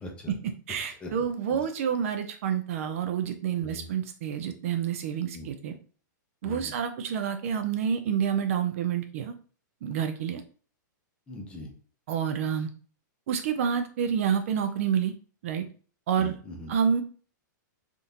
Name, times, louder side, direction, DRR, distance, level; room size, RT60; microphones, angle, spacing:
voice 1, 0.0-0.3 1.0-1.1 1.5-1.7 3.6-3.9 5.3-5.5 6.4-6.7 11.3-11.7 16.2-16.7, left 1 dB, 10° left, 1 dB, 0.5 m, -41 dB
voice 2, 0.7-5.7 6.4-9.3 9.8-10.4 12.1-12.7 13.3-15.1 15.4-15.7 16.1-16.3 16.7-17.0, right 8 dB, 45° right, 7 dB, 0.4 m, -28 dB
3.5 x 2.4 x 2.7 m, 0.41 s
hypercardioid pair, 165°, 10 cm